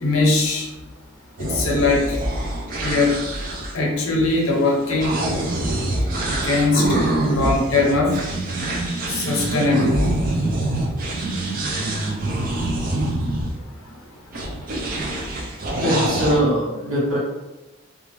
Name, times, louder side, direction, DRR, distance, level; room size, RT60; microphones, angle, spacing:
voice 1, 0.0-0.7 1.4-2.2 2.8-3.2 3.7-5.3 6.3-6.9 7.2-8.2 9.1-10.1, left 3 dB, 85° left, 0 dB, 0.7 m, -20 dB
sound 1, 1.4-13.5 14.3-16.4, right 1 dB, 40° right, 0.4 m, -25 dB
voice 2, 15.8-17.2, equal, 75° right, -7 dB, 1.3 m, -21 dB
2.4 x 2.3 x 3.0 m, 1.0 s
head